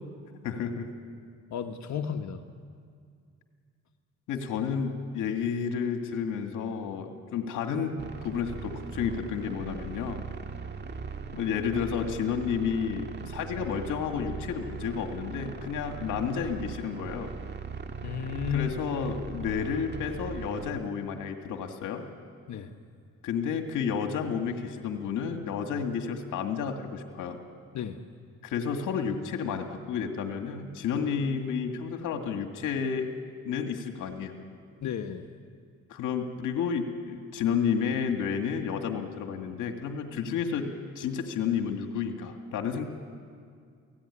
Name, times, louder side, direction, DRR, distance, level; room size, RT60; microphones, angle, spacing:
voice 1, 0.4-0.9 4.3-10.2 11.3-17.3 18.5-22.0 23.2-27.4 28.4-33.1 33.4-34.3 35.9-42.9, left 6 dB, 85° left, 5 dB, 2.2 m, -31 dB
voice 2, 1.5-2.4 18.0-18.7 22.5-22.7 27.7-28.0 34.8-35.3, left 8 dB, 70° left, 6 dB, 1.3 m, -33 dB
sound 1, 8.0-20.7, right 5 dB, 35° right, 1.9 m, -39 dB
29.0 x 18.0 x 10.0 m, 2.2 s
cardioid pair, 90°, 30 cm